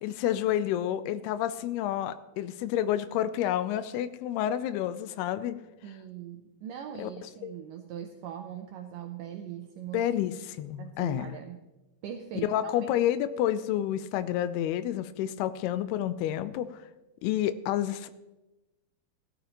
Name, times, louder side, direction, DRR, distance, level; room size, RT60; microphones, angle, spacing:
voice 1, 0.0-5.6 7.0-7.1 7.4-7.5 9.9-11.4 12.4-16.8 17.2-18.1, left 11 dB, 85° left, 13 dB, 2.5 m, -29 dB
voice 2, 5.8-10.1 10.8-11.6 12.0-13.0, right 9 dB, 80° right, 4 dB, 1.9 m, -41 dB
16.5 x 12.0 x 3.0 m, 1.0 s
omnidirectional pair, 4.6 m